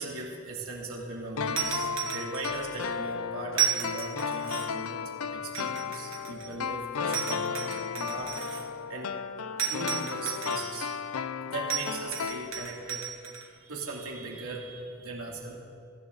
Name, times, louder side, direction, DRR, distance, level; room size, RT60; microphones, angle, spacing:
voice 1, 0.0-5.0 5.3-8.6 8.9-9.1 9.5-10.9 11.5-13.0 13.6-15.5, right 2 dB, 85° right, -2 dB, 2.9 m, -39 dB
sound 1, 1.4-13.0 13.3-13.4, left 6 dB, 85° left, 0.6 m, -34 dB
sound 2, 1.6-2.9 3.5-4.9 5.5-6.7 7.1-8.7 9.6-10.9 11.7-13.5, right 8 dB, 65° right, 2.1 m, -34 dB
23.0 x 15.5 x 4.0 m, 2.2 s
head